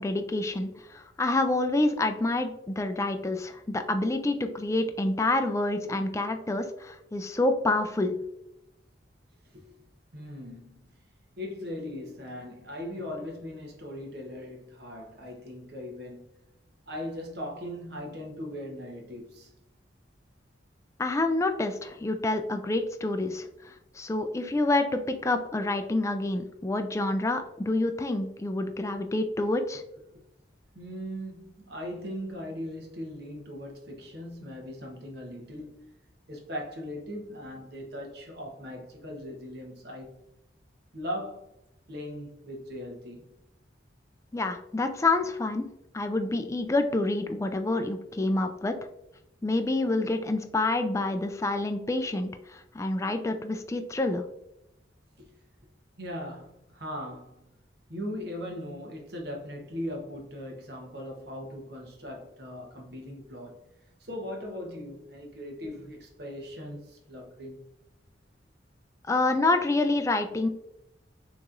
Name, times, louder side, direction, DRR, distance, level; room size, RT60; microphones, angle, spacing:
voice 1, 0.0-8.1 21.0-29.8 44.3-45.7 45.9-48.8 49.4-54.2 69.1-70.5, left 2 dB, 15° left, 0.3 m, -27 dB
voice 2, 10.1-10.8 11.4-16.2 16.9-19.5 30.7-35.9 36.3-40.1 40.9-41.5 41.9-43.3 55.2-55.3 56.0-57.5 57.9-63.6 64.0-67.6, equal, 55° right, 1.0 m, -39 dB
6.3 x 3.0 x 2.5 m
head